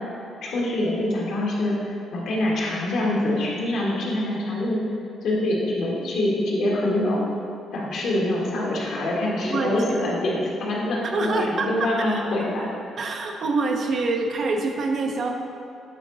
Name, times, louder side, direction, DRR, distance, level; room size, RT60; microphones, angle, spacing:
voice 1, 0.4-1.7 2.1-4.8 5.2-7.2 7.7-12.6, left 1 dB, 75° left, -4 dB, 1.5 m, -25 dB
voice 2, 9.5-9.8 11.0-12.2 13.0-15.3, right 3 dB, 55° right, 3 dB, 0.7 m, -25 dB
8.5 x 3.8 x 3.9 m, 2.6 s
cardioid pair, 90°, 0 cm